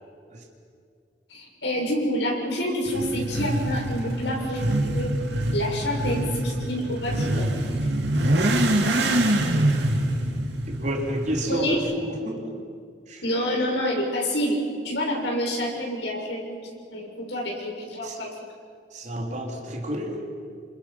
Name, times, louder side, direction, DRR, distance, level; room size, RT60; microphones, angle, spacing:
voice 1, 1.3-5.1 5.5-7.5 11.5-11.8 13.2-14.6 14.8-16.6 16.9-18.3, equal, 80° left, -1 dB, 6.9 m, -28 dB
Motorcycle / Accelerating revving vroom, 2.9-11.7, right 1 dB, 70° right, 2.9 m, -25 dB
voice 2, 10.7-12.6 13.1-13.2 18.0-18.2 18.9-20.2, equal, 45° right, 1 dB, 3.5 m, -30 dB
29.0 x 26.5 x 6.0 m, 2.2 s
head